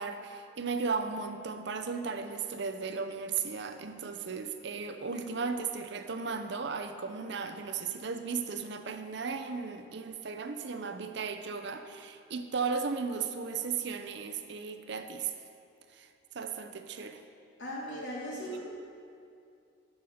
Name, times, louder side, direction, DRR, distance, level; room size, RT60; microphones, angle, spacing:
voice 1, 0.0-15.3 15.9-16.1 16.3-17.2 18.5-18.6, right 5 dB, 60° right, 7 dB, 0.6 m, -35 dB
voice 2, 17.6-18.6, equal, 70° left, -4 dB, 2.4 m, -38 dB
9.6 x 5.6 x 6.5 m, 2.4 s
head